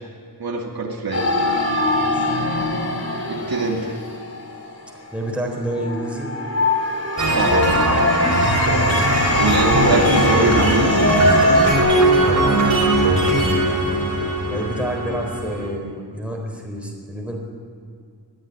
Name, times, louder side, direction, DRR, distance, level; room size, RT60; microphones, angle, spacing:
voice 1, 0.4-1.2 3.3-4.0 7.3-7.8 9.4-11.1, right 3 dB, 60° right, 0 dB, 2.6 m, -22 dB
sound 1, 1.1-5.1 5.7-11.7, left 2 dB, 40° left, 3.1 m, -21 dB
voice 2, 2.0-2.3 4.9-6.3 8.2-8.6 12.2-12.5 14.5-17.4, right 1 dB, 5° right, 0 dB, 4.2 m, -29 dB
sound 2, 7.2-15.7, right 2 dB, 45° right, 4.4 m, -20 dB
21.0 x 14.0 x 9.7 m, 2.3 s
wide cardioid pair, 160°, 41 cm